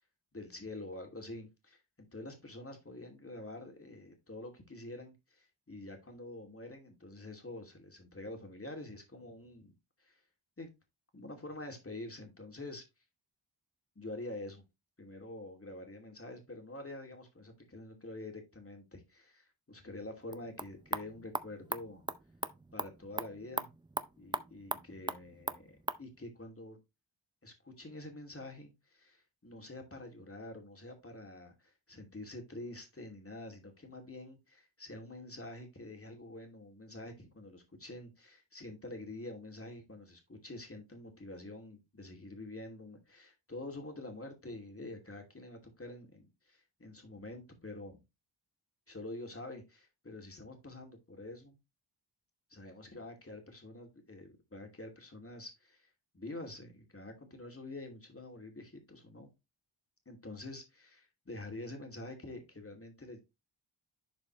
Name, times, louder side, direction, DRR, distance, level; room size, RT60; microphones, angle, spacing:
voice 1, 0.3-9.7 10.0-10.2 10.6-10.7 11.1-12.8 14.0-14.6 15.0-22.0 22.7-23.7 24.2-26.8 27.4-48.0 48.9-51.6 52.5-55.9 56.1-59.3 60.1-63.2, left 2 dB, 30° left, 2.6 m, -47 dB
sound 1, 20.2-26.1, right 2 dB, 10° right, 0.5 m, -40 dB
11.0 x 4.9 x 3.1 m
wide cardioid pair, 95°, 48 cm